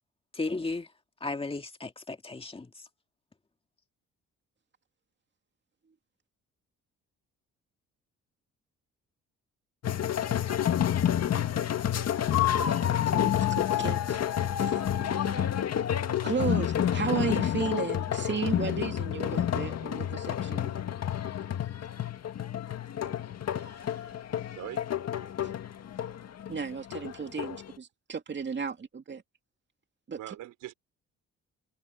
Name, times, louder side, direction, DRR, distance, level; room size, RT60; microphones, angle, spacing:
voice 1, 0.3-0.9 1.2-2.7, left 3 dB, 20° left, 2.1 m, -34 dB
sound 1, 9.8-27.7, left 10 dB, 55° left, 2.0 m, -29 dB
voice 2, 13.1-14.8 15.3-15.6 16.2-20.7 25.4-25.5 26.5-29.2 30.1-30.4, right 6 dB, 35° right, 2.5 m, -34 dB
voice 3, 23.5-24.9 30.1-30.7, right 14 dB, 90° right, 4.7 m, -44 dB
cardioid pair, 90°, 30 cm